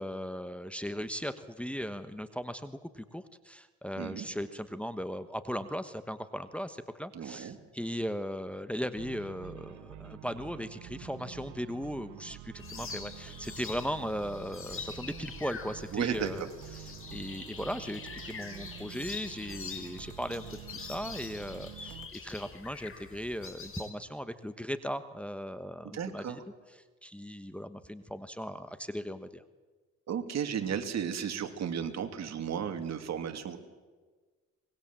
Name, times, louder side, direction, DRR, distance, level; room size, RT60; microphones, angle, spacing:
voice 1, 0.0-16.5 16.7-26.4 27.0-29.4, equal, 5° left, 10 dB, 1.2 m, -38 dB
voice 2, 7.1-7.6 15.9-16.5 25.9-26.4 30.1-33.6, right 8 dB, 60° right, 7 dB, 2.7 m, -34 dB
sound 1, 9.0-22.1, right 12 dB, 80° right, 0.9 m, -48 dB
sound 2, 12.6-23.9, left 5 dB, 45° left, 3.9 m, -45 dB
24.5 x 21.0 x 7.6 m, 1.4 s
cardioid pair, 90°, 30 cm